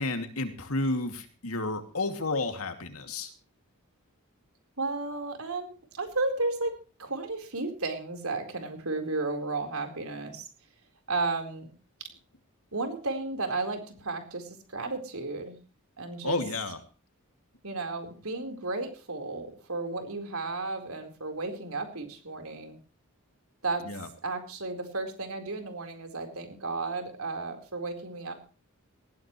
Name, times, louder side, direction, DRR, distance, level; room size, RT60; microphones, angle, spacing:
voice 1, 0.0-3.3 16.2-16.8 23.8-24.1, left 2 dB, 75° left, 6 dB, 2.5 m, -31 dB
voice 2, 4.8-10.5 11.1-11.7 12.0-12.1 12.7-15.6 16.0-16.4 17.6-22.8 23.6-23.8 24.2-28.3, right 3 dB, 75° right, 5 dB, 4.3 m, -33 dB
19.5 x 15.5 x 3.2 m, 0.36 s
head